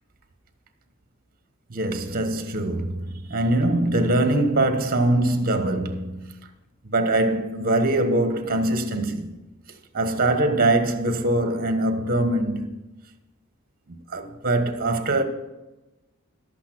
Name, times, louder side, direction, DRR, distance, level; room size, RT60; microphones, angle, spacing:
voice 1, 1.7-6.3 6.8-9.3 9.9-12.7 13.9-15.2, right 1 dB, 40° right, 1.2 m, -23 dB
12.0 x 8.3 x 6.0 m
head